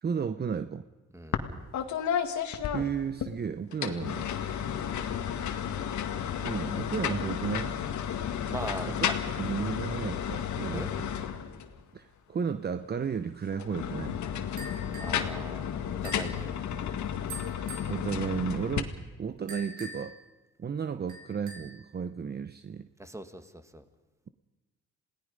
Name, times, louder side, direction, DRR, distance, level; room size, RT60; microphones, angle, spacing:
voice 1, 0.0-0.8 2.7-4.3 6.4-7.8 8.8-9.0 9.4-11.1 11.9-14.2 17.9-18.9 19.2-20.1 20.6-22.9, right 6 dB, 35° right, 11 dB, 0.8 m, -33 dB
sound 1, 1.3-1.5 1.7-3.3 3.7-11.8 13.5-18.8, left 8 dB, 70° left, 2.0 m, -32 dB
voice 2, 8.5-9.1 10.7-10.9 15.0-16.6 23.0-23.8, right 1 dB, 10° right, 9 dB, 2.0 m, -40 dB
sound 2, 14.6-15.2 16.0-16.4 17.3-17.9 19.5-20.2 21.1-21.8, right 1 dB, 75° right, 5.1 m, -43 dB
28.0 x 18.0 x 5.3 m, 1.2 s
cardioid pair, 90°, 30 cm